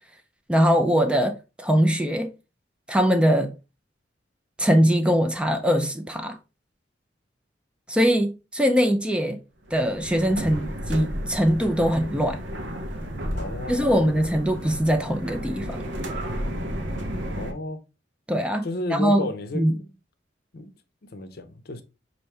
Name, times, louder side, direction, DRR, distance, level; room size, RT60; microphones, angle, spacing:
voice 1, 0.5-2.3 2.9-3.5 4.6-6.4 7.9-9.4 9.7-12.4 13.7-15.8 18.3-18.7 18.9-19.3 19.5-19.7, equal, 5° right, 0.4 m, -22 dB
sound 1, 9.7-17.5, equal, 75° right, 0.8 m, -32 dB
voice 2, 13.3-14.1 17.4-17.8 18.6-19.9 20.5-20.7 21.1-21.8, left 2 dB, 55° left, 0.6 m, -33 dB
5.6 x 2.6 x 3.2 m
head